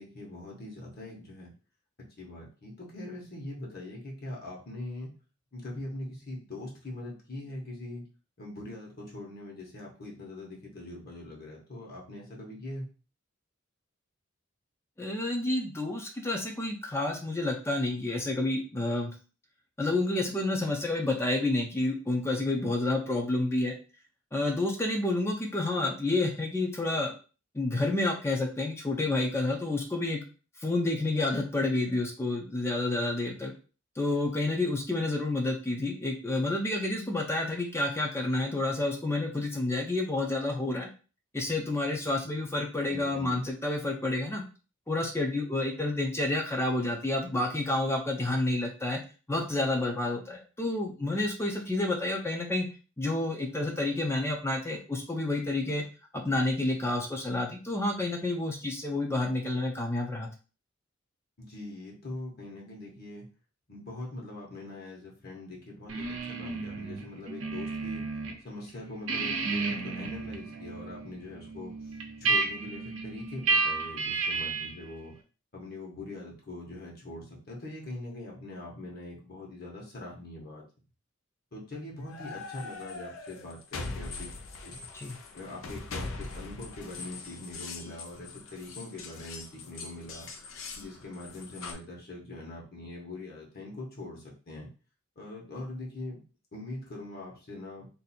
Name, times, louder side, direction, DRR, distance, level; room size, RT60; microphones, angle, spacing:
voice 1, 0.0-1.5 2.2-5.1 5.5-8.0 8.4-12.9 42.9-43.5 61.4-63.3 63.7-68.0 68.4-75.1 75.5-80.6 81.5-84.3 84.6-84.8 85.3-90.3 90.8-94.7 95.2-96.2 96.5-97.9, left 2 dB, 50° left, -2 dB, 1.2 m, -42 dB
voice 2, 15.0-19.1 19.8-23.7 24.3-27.1 27.5-30.2 30.6-33.5 34.0-40.9 41.3-44.4 44.9-49.0 49.3-52.7 53.0-55.8 56.1-60.3 84.9-85.2, left 2 dB, 15° left, 1 dB, 0.5 m, -29 dB
sound 1, 65.9-68.4 68.7-74.8, right 4 dB, 75° right, 0.7 m, -32 dB
sound 2, 82.0-91.7, left 3 dB, 85° left, 0.6 m, -42 dB
2.7 x 2.6 x 4.1 m, 0.35 s
head